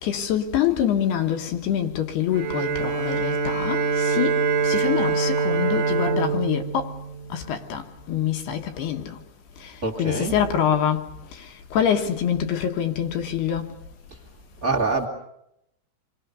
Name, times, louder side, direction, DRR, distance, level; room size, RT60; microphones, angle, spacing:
voice 1, 0.0-7.0 7.3-7.8 8.1-9.2 9.6-13.7, left 9 dB, 70° left, 3.1 m, -25 dB
Bowed string instrument, 2.3-7.8, right 5 dB, 55° right, 2.7 m, -25 dB
voice 2, 9.8-10.4 14.6-15.1, right 3 dB, 25° right, 1.9 m, -25 dB
27.5 x 23.5 x 6.8 m
omnidirectional pair, 5.5 m